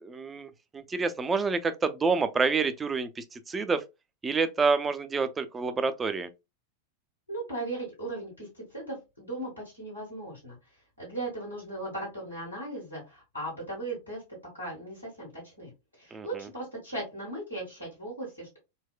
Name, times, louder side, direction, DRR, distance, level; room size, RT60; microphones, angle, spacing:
voice 1, 0.0-3.8 4.2-6.3 16.1-16.5, right 4 dB, 15° right, 0.4 m, -28 dB
voice 2, 7.3-10.6 11.0-14.2 14.5-15.7 16.0-18.6, right 2 dB, 90° right, 1.6 m, -37 dB
3.9 x 2.1 x 2.2 m
figure-of-eight pair, 90°, 0 cm